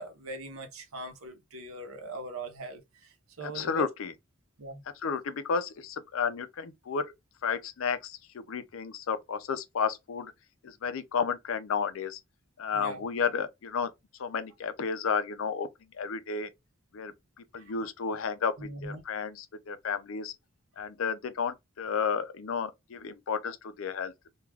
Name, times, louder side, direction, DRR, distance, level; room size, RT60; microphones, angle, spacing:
voice 1, 0.0-3.9 4.6-4.8 12.7-13.0 17.6-17.9 18.6-19.0, right 2 dB, 85° right, 0.8 m, -41 dB
voice 2, 3.5-4.1 5.0-7.1 7.4-10.3 10.6-12.2 12.6-13.9 14.2-15.7 15.9-16.5 16.9-17.1 17.5-20.3 20.8-24.1, left 6 dB, 70° left, 0.5 m, -32 dB
2.3 x 2.3 x 3.2 m
head